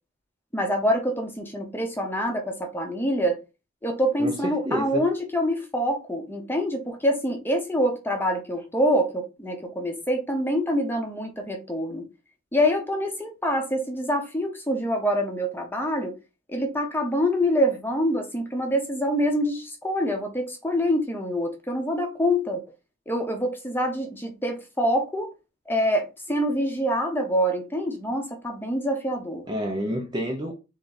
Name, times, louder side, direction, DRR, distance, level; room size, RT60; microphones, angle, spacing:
voice 1, 0.5-3.4 3.8-12.1 12.5-16.1 16.5-22.6 23.1-25.3 25.7-29.4, equal, 10° left, 0.8 m, -25 dB
voice 2, 4.2-5.0 29.5-30.5, equal, 20° right, 0.6 m, -29 dB
3.7 x 3.4 x 4.0 m
head